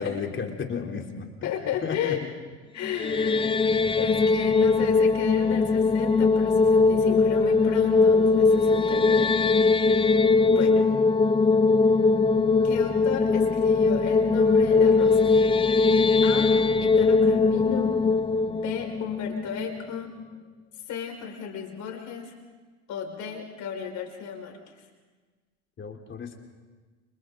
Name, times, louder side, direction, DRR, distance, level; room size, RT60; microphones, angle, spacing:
voice 1, 0.0-1.5 1.8-2.2 25.8-26.4, left 5 dB, 35° left, 2 dB, 3.5 m, -33 dB
voice 2, 1.4-2.2 2.7-9.3 10.5-10.9 12.6-15.4 16.2-16.5 16.8-17.9 18.5-20.1 20.9-22.3 22.9-24.6, left 8 dB, 55° left, 2 dB, 5.5 m, -34 dB
sound 1, 2.8-20.0, left 4 dB, 15° left, 0.6 m, -21 dB
30.0 x 30.0 x 3.9 m, 1.4 s
hypercardioid pair, 75°, 35 cm